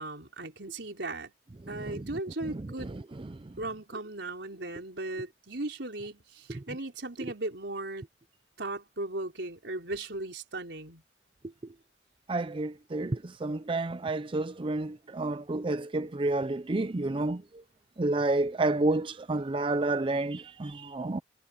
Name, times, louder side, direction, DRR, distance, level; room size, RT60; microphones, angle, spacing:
voice 1, 0.0-1.3 1.7-2.9 3.6-8.0 8.6-11.0, right 2 dB, 85° right, 4.0 m, -37 dB
voice 2, 12.3-17.4 18.0-21.2, right 2 dB, 30° right, 0.5 m, -29 dB
head